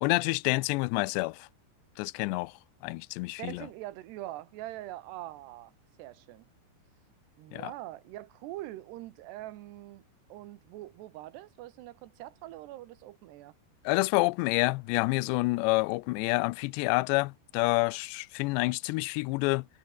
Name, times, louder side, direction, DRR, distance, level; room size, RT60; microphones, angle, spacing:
voice 1, 0.0-1.5 2.0-2.6 2.8-3.7 7.5-7.7 13.8-19.7, left 24 dB, 80° left, 2.7 m, -28 dB
voice 2, 3.4-5.7 6.0-6.5 7.4-10.0 10.3-13.5, right 15 dB, 75° right, 3.0 m, -43 dB
omnidirectional pair, 5.2 m